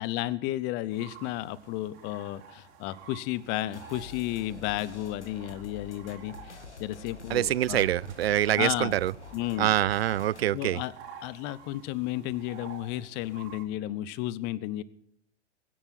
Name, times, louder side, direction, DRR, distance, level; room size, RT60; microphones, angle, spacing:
voice 1, 0.0-7.9 8.6-9.0 9.3-9.7 10.5-10.9 11.2-14.8, left 15 dB, 30° left, 0.8 m, -33 dB
sound 1, 0.9-13.6, right 7 dB, 35° right, 3.6 m, -51 dB
sound 2, 3.7-10.5, left 5 dB, 85° left, 2.0 m, -47 dB
voice 2, 7.3-9.1 9.6-10.8, right 12 dB, 60° right, 0.5 m, -25 dB
23.0 x 10.5 x 4.5 m
figure-of-eight pair, 100°, 34 cm